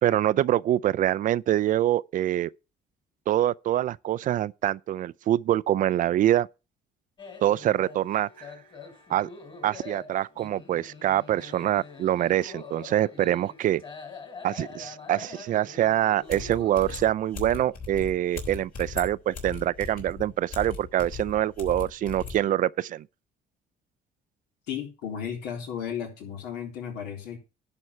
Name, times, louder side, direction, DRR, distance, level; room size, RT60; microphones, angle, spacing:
voice 1, 0.0-2.5 3.3-6.5 7.4-8.5 9.1-9.3 9.6-13.8 14.4-23.1, right 12 dB, 50° right, 0.4 m, -25 dB
sound 1, 7.2-17.1, left 4 dB, 30° left, 2.7 m, -45 dB
sound 2, 16.3-22.4, left 4 dB, 60° left, 3.6 m, -38 dB
voice 2, 24.7-27.4, left 8 dB, 90° left, 3.5 m, -34 dB
11.0 x 4.4 x 6.9 m
cardioid pair, 110°, 17 cm